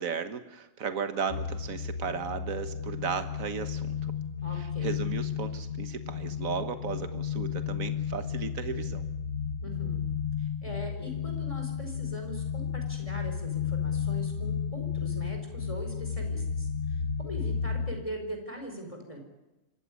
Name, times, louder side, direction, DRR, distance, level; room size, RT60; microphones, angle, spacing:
voice 1, 0.0-4.1 4.5-9.1, right 6 dB, 75° right, 9 dB, 1.7 m, -35 dB
sound 1, 1.3-18.0, left 7 dB, 55° left, 1.3 m, -33 dB
voice 2, 4.4-5.0 9.6-10.0 10.4-19.2, equal, 25° left, 3 dB, 4.6 m, -41 dB
26.0 x 14.5 x 9.7 m, 1.0 s
omnidirectional pair, 1.4 m